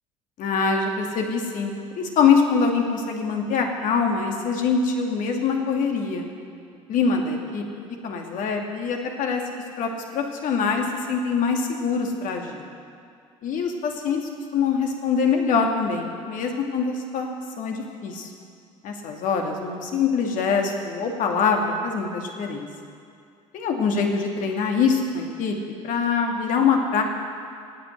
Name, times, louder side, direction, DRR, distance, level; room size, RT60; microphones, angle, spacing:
voice 1, 0.4-6.3 6.9-7.6 8.0-9.4 9.8-12.6 13.4-14.2 14.5-18.3 18.8-22.7 23.5-25.5 25.8-27.0, left 5 dB, 50° left, 2 dB, 2.5 m, -24 dB
19.0 x 9.0 x 8.0 m, 2.3 s
figure-of-eight pair, 60°, 17 cm